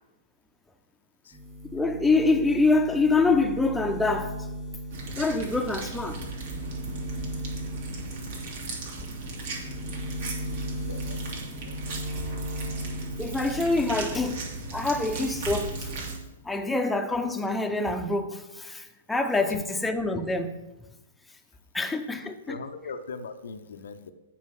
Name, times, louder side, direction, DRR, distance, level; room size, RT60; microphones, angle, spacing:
sound 1, 1.3-14.3 14.6-15.6, equal, 25° right, 2.3 m, -38 dB
voice 1, 1.7-4.4 5.2-6.2 13.2-14.4 14.7-15.9 16.4-20.6 21.7-22.6, left 3 dB, 5° left, 5 dB, 0.7 m, -25 dB
sound 2, 4.9-16.2, right 3 dB, 55° right, 2.6 m, -37 dB
voice 2, 7.8-8.5 10.9-11.2 11.6-12.0 13.9-14.0 22.1-24.1, left 4 dB, 65° left, 9 dB, 0.7 m, -41 dB
8.5 x 4.9 x 7.5 m, 1.0 s
figure-of-eight pair, 110°, 0 cm